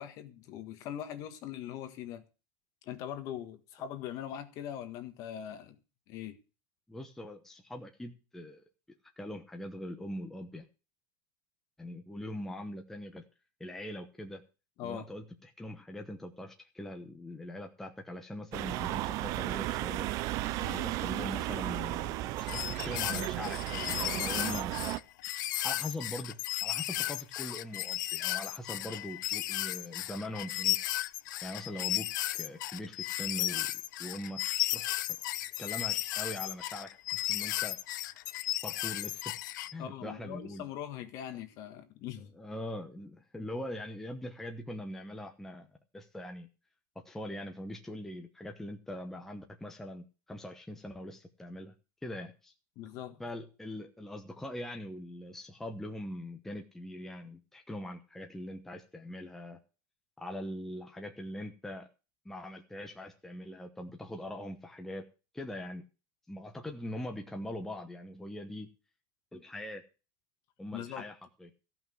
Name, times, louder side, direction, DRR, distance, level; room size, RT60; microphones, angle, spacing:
voice 1, 0.0-2.3 2.8-5.8 6.1-6.4 14.8-15.1 20.6-20.9 39.8-42.3 52.7-53.2 70.7-71.0, left 10 dB, 35° left, 1.6 m, -41 dB
voice 2, 6.9-8.6 9.2-10.7 11.8-13.2 13.6-14.4 14.8-20.1 20.7-22.2 22.5-24.7 25.6-30.8 31.4-35.1 35.6-37.8 38.6-39.4 39.7-40.7 42.4-45.7 45.9-46.5 46.9-51.7 52.0-52.5 53.2-59.6 60.2-61.9 62.2-65.1 65.3-65.8 66.3-68.7 69.3-69.8 70.6-71.5, left 1 dB, 5° left, 1.0 m, -42 dB
sound 1, 18.5-25.0, right 16 dB, 35° right, 0.6 m, -34 dB
sound 2, 22.4-39.7, left 15 dB, 80° left, 0.6 m, -34 dB
15.0 x 5.9 x 7.8 m
supercardioid pair, 170°, 10 cm